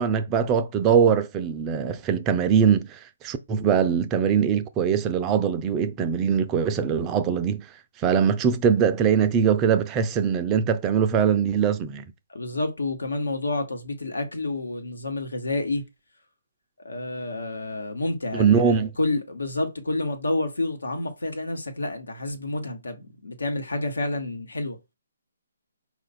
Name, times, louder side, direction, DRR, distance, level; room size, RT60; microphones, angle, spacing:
voice 1, 0.0-7.6 8.0-12.0 18.3-18.9, right 7 dB, 20° right, 0.4 m, -22 dB
voice 2, 12.3-15.8 16.8-24.8, left 2 dB, 85° left, 1.2 m, -29 dB
4.4 x 2.5 x 4.1 m
hypercardioid pair, 155°, 0 cm